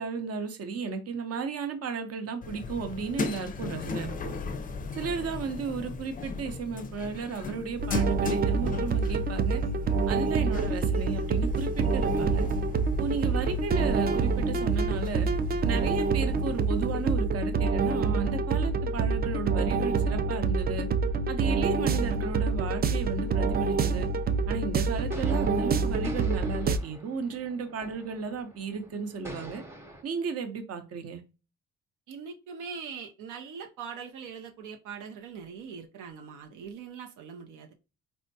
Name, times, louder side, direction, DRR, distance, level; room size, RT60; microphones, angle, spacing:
voice 1, 0.0-4.4 4.9-9.6 10.1-12.5 13.0-15.3 15.6-20.9 21.3-24.1 24.5-29.6 30.0-31.2, right 5 dB, 55° right, 0.7 m, -34 dB
sound 1, 2.4-17.2, left 4 dB, 30° left, 0.4 m, -38 dB
sound 2, 7.8-26.8, right 4 dB, 30° right, 0.4 m, -27 dB
sound 3, 25.1-30.0, right 1 dB, 10° right, 0.9 m, -46 dB
voice 2, 32.1-37.7, right 6 dB, 85° right, 0.6 m, -42 dB
4.4 x 2.1 x 2.6 m
cardioid pair, 90°, 30 cm